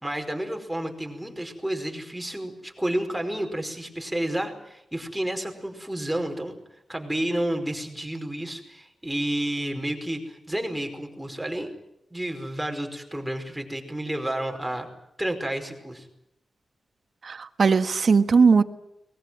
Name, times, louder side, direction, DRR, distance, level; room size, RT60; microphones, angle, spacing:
voice 1, 0.0-6.6 6.9-11.7 12.1-14.9 15.2-16.1, right 1 dB, 5° right, 3 dB, 5.1 m, -30 dB
voice 2, 17.2-18.6, right 5 dB, 60° right, 9 dB, 1.5 m, -19 dB
23.0 x 20.5 x 9.4 m, 0.83 s
wide cardioid pair, 90°, 0 cm